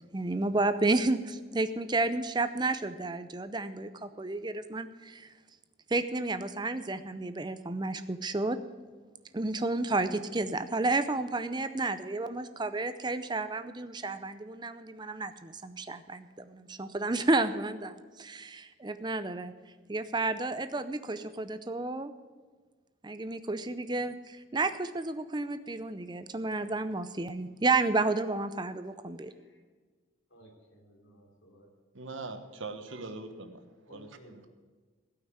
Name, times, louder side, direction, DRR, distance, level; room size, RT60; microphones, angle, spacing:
voice 1, 0.1-5.3 5.9-8.6 9.3-19.5 19.9-22.1 23.0-29.3, right 2 dB, 20° right, 11 dB, 0.5 m, -31 dB
voice 2, 29.2-29.6 30.3-31.7 33.9-34.5, equal, 65° left, -1 dB, 3.7 m, -57 dB
voice 3, 31.9-33.6 33.9-34.5, right 3 dB, 70° right, 7 dB, 1.3 m, -42 dB
16.5 x 5.9 x 9.6 m, 1.4 s
head